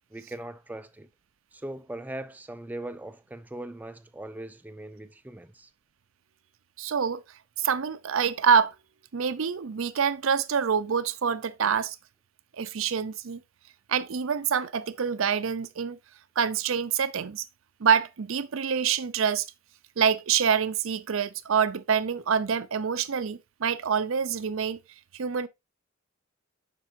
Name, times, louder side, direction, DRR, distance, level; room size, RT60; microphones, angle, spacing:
voice 1, 0.1-1.1 1.5-5.7, right 1 dB, 10° right, 0.3 m, -40 dB
voice 2, 6.8-7.2 7.6-8.7 9.1-12.0 12.6-13.4 13.9-16.0 16.4-17.4 17.8-19.5 20.0-24.8 25.1-25.5, right 7 dB, 80° right, 0.6 m, -26 dB
7.5 x 5.9 x 2.6 m
head